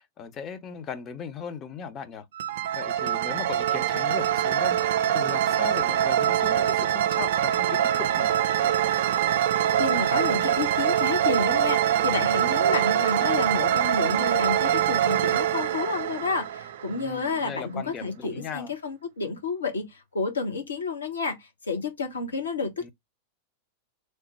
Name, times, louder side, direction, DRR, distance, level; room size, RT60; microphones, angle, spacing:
voice 1, 0.0-2.3 2.8-4.8 5.1-8.3 16.9-18.7 22.8-22.9, left 7 dB, 30° left, 0.6 m, -37 dB
sound 1, 2.4-17.2, right 10 dB, 55° right, 0.3 m, -24 dB
voice 2, 9.8-22.9, left 4 dB, 70° left, 1.0 m, -30 dB
3.2 x 2.1 x 4.1 m
figure-of-eight pair, 90°, 0 cm